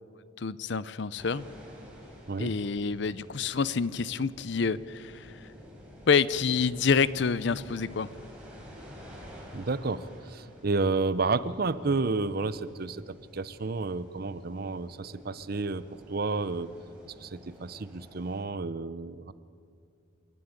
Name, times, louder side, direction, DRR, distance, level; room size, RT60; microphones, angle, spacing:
voice 1, 0.4-1.4 2.4-5.4 6.1-8.1, left 5 dB, 60° left, 17 dB, 0.6 m, -27 dB
sound 1, 1.2-18.4, equal, 5° right, 4.8 m, -50 dB
voice 2, 9.5-16.7 17.2-19.3, right 3 dB, 50° right, 15 dB, 0.7 m, -31 dB
27.5 x 11.5 x 8.9 m, 2.3 s
head